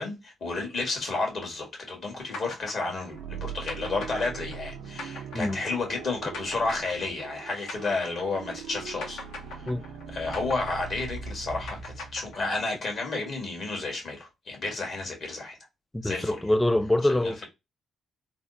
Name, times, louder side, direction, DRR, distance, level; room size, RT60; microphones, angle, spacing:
voice 1, 0.0-9.2 10.1-15.6 16.0-16.4 17.2-17.5, left 3 dB, 60° left, 1.6 m, -31 dB
sound 1, 2.3-8.7 9.0-12.9, left 3 dB, 80° left, 0.9 m, -41 dB
sound 2, 3.1-12.8, right 6 dB, 85° right, 0.4 m, -41 dB
voice 2, 15.9-17.4, left 1 dB, 10° left, 0.4 m, -25 dB
3.3 x 2.0 x 2.6 m
supercardioid pair, 60°, 0 cm